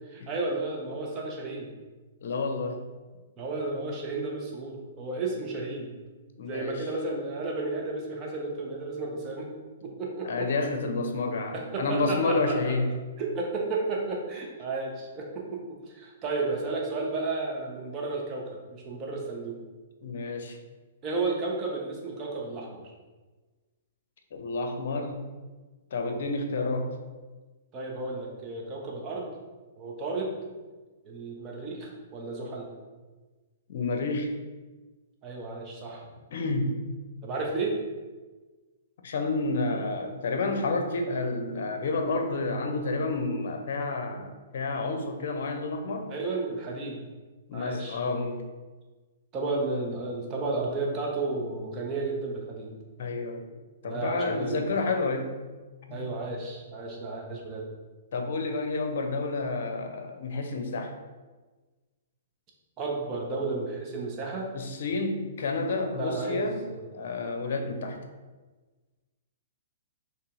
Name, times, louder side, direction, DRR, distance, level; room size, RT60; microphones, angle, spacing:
voice 1, 0.1-1.7 3.4-5.9 6.4-9.5 9.8-10.5 11.5-12.7 13.2-19.6 21.0-22.8 26.0-26.2 27.7-29.3 29.8-30.4 31.0-32.7 35.2-36.1 37.2-37.8 46.1-47.0 47.5-48.0 49.3-52.7 53.8-54.6 55.9-57.7 62.8-64.5 66.0-66.9, right 3 dB, 30° right, -1 dB, 1.0 m, -33 dB
voice 2, 2.2-2.8 6.4-6.9 10.2-12.9 20.0-20.6 24.3-25.2 25.9-26.9 33.7-34.3 36.3-36.8 39.0-46.1 47.5-48.4 53.0-53.5 53.8-55.3 55.9-56.0 58.1-60.9 64.5-66.6 66.9-68.0, left 3 dB, 60° left, 5 dB, 0.6 m, -30 dB
5.4 x 3.2 x 2.6 m, 1.3 s
hypercardioid pair, 120°, 0 cm